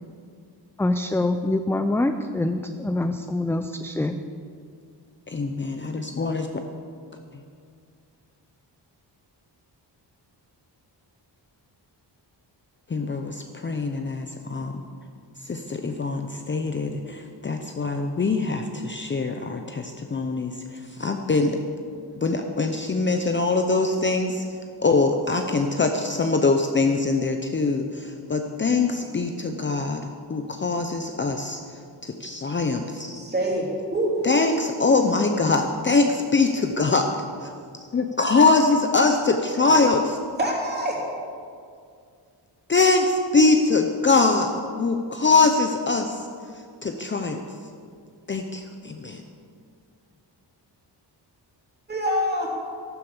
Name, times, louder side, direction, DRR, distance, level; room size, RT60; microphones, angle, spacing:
voice 1, 0.8-4.2, left 2 dB, 5° left, 7 dB, 0.3 m, -25 dB
voice 2, 5.3-6.6 12.9-14.8 15.5-21.6 22.2-24.4 24.8-31.6 32.0-33.2 34.2-37.1 37.4-37.5 37.9-40.2 42.7-46.3 46.8-47.4 48.3-49.2, left 3 dB, 25° left, 5 dB, 0.7 m, -23 dB
voice 3, 33.2-34.1 40.4-41.0 51.9-52.5, equal, 20° right, -3 dB, 3.4 m, -25 dB
14.0 x 12.0 x 7.2 m, 2.3 s
wide cardioid pair, 175°, 43 cm